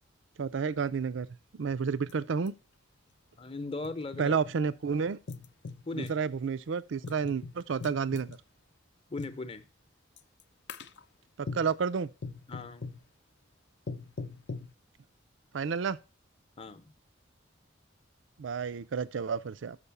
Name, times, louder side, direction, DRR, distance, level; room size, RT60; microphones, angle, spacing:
voice 1, 0.4-1.3 1.6-2.5 4.2-5.2 5.9-8.4 11.4-12.1 15.5-16.0 18.4-19.8, right 6 dB, 70° right, 0.5 m, -30 dB
sound 1, 2.1-2.2 2.5-2.6 3.4-4.6 5.3-6.2 7.0-8.4 9.2-9.4 10.2-10.4 10.7-11.0 11.5-11.8 12.2-13.0 13.9-14.7, left 4 dB, 60° left, 0.6 m, -41 dB
voice 2, 3.4-4.4 5.8-6.1 9.1-9.7 12.5-12.9 16.6-16.9, left 3 dB, 30° left, 0.8 m, -38 dB
6.7 x 5.5 x 6.9 m
head